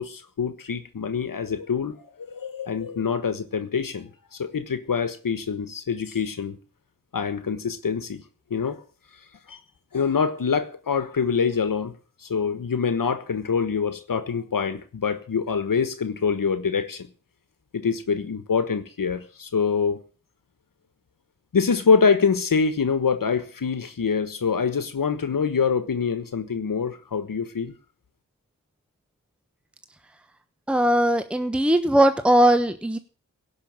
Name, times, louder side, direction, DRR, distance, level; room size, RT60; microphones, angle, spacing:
voice 1, 0.0-6.6 7.1-8.2 8.5-8.8 9.5-9.6 9.9-11.9 12.2-17.1 17.7-20.0 21.5-27.7, left 5 dB, 75° left, 1.4 m, -25 dB
voice 2, 30.7-33.0, right 1 dB, 5° right, 1.2 m, -19 dB
17.0 x 6.1 x 8.8 m
wide cardioid pair, 65°, 34 cm